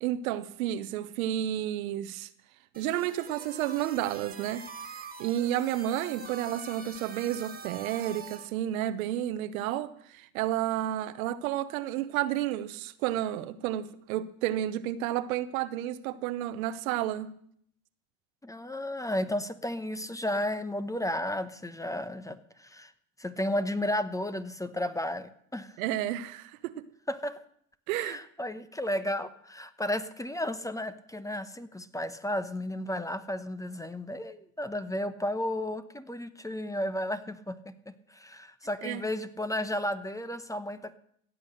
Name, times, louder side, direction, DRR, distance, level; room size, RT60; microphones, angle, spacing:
voice 1, 0.0-2.3 2.8-4.7 5.2-17.3 25.8-26.8 27.9-28.2 38.8-39.0, right 12 dB, 80° right, 13 dB, 0.9 m, -31 dB
sound 1, 2.7-8.5, right 5 dB, 20° right, 2.0 m, -44 dB
voice 2, 18.4-22.9 23.2-25.8 27.1-27.4 28.0-40.9, left 1 dB, 10° left, 13 dB, 1.0 m, -33 dB
16.0 x 8.3 x 6.6 m, 0.66 s
hypercardioid pair, 80°, 41 cm